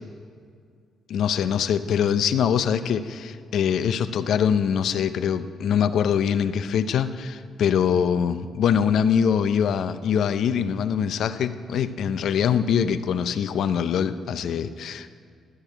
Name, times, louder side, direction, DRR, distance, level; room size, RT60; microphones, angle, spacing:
voice 1, 1.1-15.1, left 8 dB, 70° left, 12 dB, 0.6 m, -23 dB
13.5 x 6.5 x 8.9 m, 2.2 s
cardioid pair, 90°, 0 cm